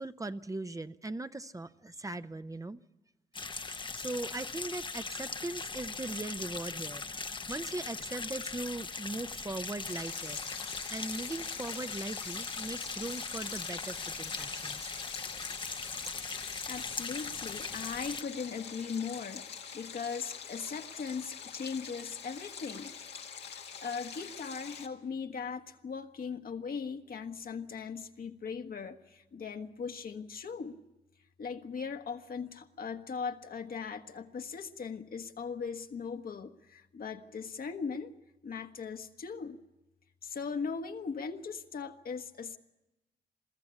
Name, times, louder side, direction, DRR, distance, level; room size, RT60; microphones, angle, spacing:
voice 1, 0.0-2.8 3.5-14.9, right 2 dB, 20° right, 11 dB, 0.7 m, -40 dB
sound 1, 3.3-18.2, left 4 dB, 30° left, 0.8 m, -40 dB
Stream, 9.9-24.9, left 7 dB, 90° left, 1.8 m, -45 dB
voice 2, 16.7-19.5 19.7-23.0 23.5-30.8 31.4-38.1 38.4-39.6 40.2-42.6, left 5 dB, 60° left, 6 dB, 1.3 m, -39 dB
22.0 x 14.0 x 9.8 m, 1.0 s
cardioid pair, 70°, 17 cm